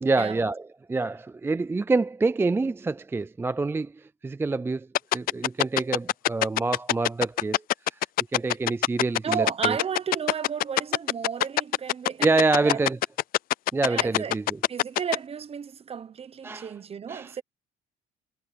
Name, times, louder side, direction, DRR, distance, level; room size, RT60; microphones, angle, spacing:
voice 1, 0.0-4.9 5.1-7.6 7.9-8.0 8.3-9.8 12.2-13.0 13.7-14.6 16.4-16.7 17.1-17.3, right 3 dB, 15° right, 0.4 m, -26 dB
sound 1, 4.9-15.2, left 15 dB, 60° left, 0.4 m, -22 dB
voice 2, 9.2-12.3 12.6-12.8 13.9-14.4 14.7-17.4, right 7 dB, 35° right, 1.1 m, -33 dB
cardioid pair, 110°, 17 cm